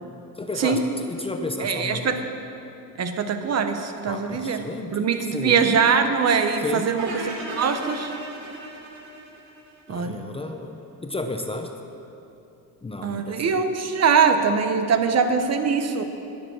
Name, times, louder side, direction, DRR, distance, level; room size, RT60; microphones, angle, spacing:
voice 1, 0.4-2.2 4.0-5.6 6.6-6.9 9.9-11.7 12.8-13.6, left 2 dB, 15° left, 5 dB, 0.7 m, -32 dB
voice 2, 1.6-2.2 3.0-4.6 4.9-8.1 9.9-10.2 13.0-16.0, right 6 dB, 45° right, 7 dB, 0.9 m, -22 dB
sound 1, 7.0-10.1, right 2 dB, 65° right, 2.9 m, -36 dB
20.0 x 7.0 x 6.3 m, 2.8 s
cardioid pair, 150°, 37 cm